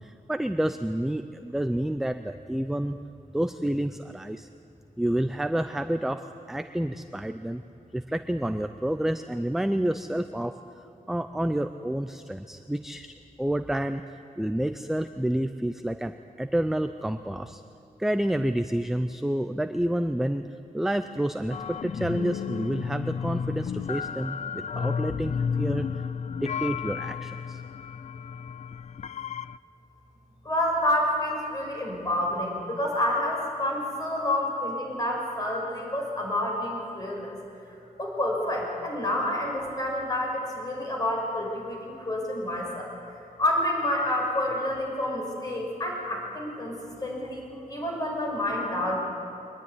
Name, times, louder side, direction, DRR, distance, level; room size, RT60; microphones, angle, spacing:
voice 1, 0.0-3.0 3.3-4.5 5.0-7.6 7.9-10.5 11.1-13.1 13.4-17.6 18.0-26.0 26.3-27.6, right 1 dB, ahead, 8 dB, 0.5 m, -29 dB
sound 1, 21.5-29.6, left 6 dB, 50° left, 0.5 m, -32 dB
voice 2, 30.4-37.4 38.0-42.9 43.4-49.0, left 1 dB, 25° left, -1 dB, 5.9 m, -28 dB
23.5 x 20.5 x 9.7 m, 2.6 s
wide cardioid pair, 175°, 15 cm